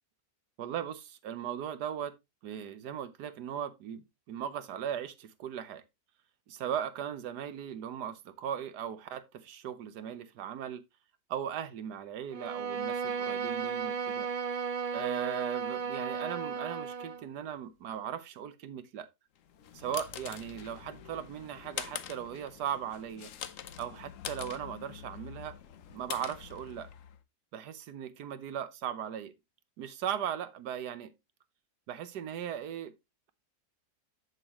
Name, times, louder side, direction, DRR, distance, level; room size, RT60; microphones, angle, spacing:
voice 1, 0.6-2.1 2.4-5.8 6.5-10.8 11.3-14.3 14.9-19.1 19.7-23.3 23.8-25.5 25.9-26.9 27.5-29.3 29.8-31.1 31.9-32.9, right 9 dB, 85° right, 1.4 m, -38 dB
Bowed string instrument, 12.3-17.2, right 6 dB, 60° right, 0.3 m, -34 dB
sound 1, 19.4-27.2, left 9 dB, 60° left, 1.0 m, -44 dB
8.0 x 7.4 x 2.9 m
omnidirectional pair, 1.7 m